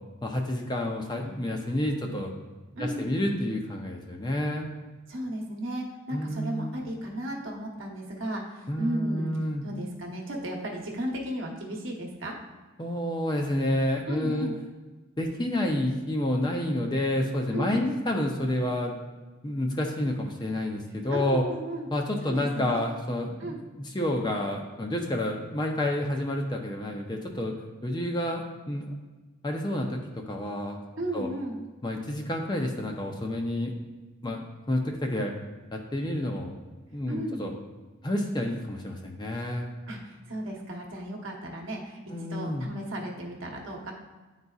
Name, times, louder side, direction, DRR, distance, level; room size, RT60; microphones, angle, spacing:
voice 1, 0.2-2.3 2.8-4.7 6.1-6.8 8.7-9.7 12.8-14.5 15.2-18.9 19.4-21.4 21.9-27.5 27.8-28.4 28.7-28.9 29.4-30.0 30.3-30.8 31.1-31.3 31.8-33.7 34.2-34.4 34.7-35.3 35.7-36.6 36.9-37.5 38.0-39.7 42.1-42.7, left 1 dB, 20° left, 2 dB, 0.5 m, -29 dB
voice 2, 2.7-3.1 5.1-9.4 9.6-12.3 14.1-14.6 17.5-18.0 21.1-21.9 22.2-22.8 23.4-23.6 31.0-31.6 37.1-37.4 39.9-43.9, right 1 dB, 70° right, 0 dB, 1.0 m, -35 dB
10.0 x 4.0 x 2.4 m, 1.2 s
head